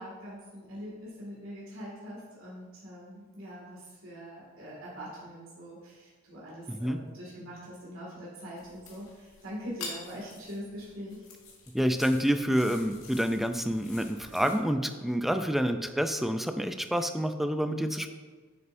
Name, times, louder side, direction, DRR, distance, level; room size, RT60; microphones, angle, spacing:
voice 1, 0.0-11.2, equal, 85° right, -7 dB, 2.1 m, -43 dB
voice 2, 6.7-7.0 11.7-18.1, equal, ahead, 8 dB, 0.3 m, -28 dB
sound 1, 8.6-14.5, left 4 dB, 85° left, 1.8 m, -47 dB
8.7 x 6.7 x 2.6 m, 1.4 s
head